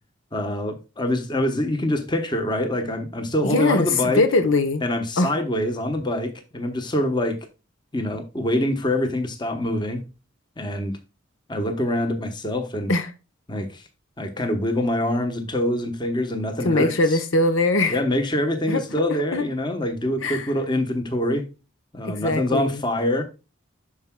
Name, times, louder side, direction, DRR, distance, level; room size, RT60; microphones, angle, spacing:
voice 1, 0.3-4.2 4.8-7.4 7.9-10.0 10.6-11.0 11.5-12.9 13.5-13.8 14.2-17.2 17.9-21.5 21.9-23.2, left 1 dB, 20° left, 0.9 m, -25 dB
voice 2, 3.4-4.8 5.2-5.3 12.9-13.1 16.6-18.0 18.7-18.8 19.3-19.4 20.2-20.5 22.0-22.8, left 2 dB, 80° left, 0.9 m, -21 dB
11.5 x 4.7 x 2.2 m
head